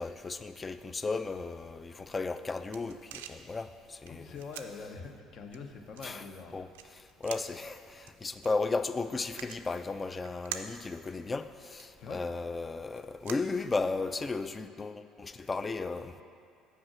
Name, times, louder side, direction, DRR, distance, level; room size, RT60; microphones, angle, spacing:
voice 1, 0.0-4.3 6.0-6.2 6.5-6.7 7.2-16.2, left 3 dB, 25° left, 11 dB, 0.3 m, -35 dB
sound 1, 2.2-14.2, right 9 dB, 75° right, 0.3 m, -49 dB
voice 2, 4.1-6.6 12.0-12.2, left 4 dB, 50° left, 4 dB, 0.7 m, -44 dB
6.0 x 4.7 x 6.2 m, 2.4 s
hypercardioid pair, 60°, 0 cm